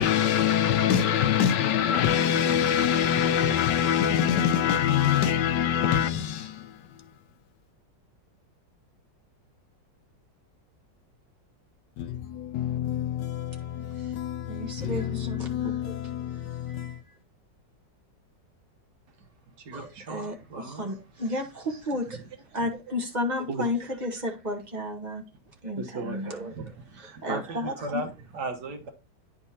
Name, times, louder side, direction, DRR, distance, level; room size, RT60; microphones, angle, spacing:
voice 1, 0.0-6.8 12.0-17.0, left 9 dB, 75° left, 1.2 m, -25 dB
voice 2, 14.5-15.9 16.3-17.0 19.7-22.2 22.5-25.3 25.6-26.5 27.2-28.0, left 1 dB, 30° right, 1.0 m, -33 dB
voice 3, 19.6-21.0 22.2-22.3 22.6-22.7 23.5-24.0 25.8-28.9, right 3 dB, 65° right, 1.7 m, -37 dB
9.6 x 5.4 x 2.7 m
omnidirectional pair, 1.9 m